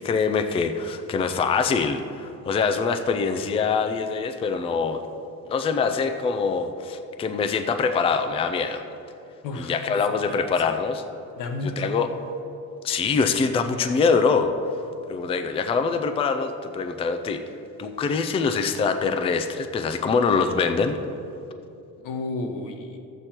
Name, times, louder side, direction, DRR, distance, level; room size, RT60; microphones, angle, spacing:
voice 1, 0.0-5.0 5.5-8.8 9.6-11.0 11.6-12.1 12.8-14.5 15.1-17.4 17.8-21.0, left 5 dB, 20° left, 7 dB, 0.3 m, -24 dB
voice 2, 9.4-9.9 10.3-10.7 11.4-11.9 22.0-23.0, left 2 dB, 90° left, 5 dB, 1.1 m, -32 dB
12.5 x 8.1 x 4.4 m, 2.7 s
cardioid pair, 175°, 31 cm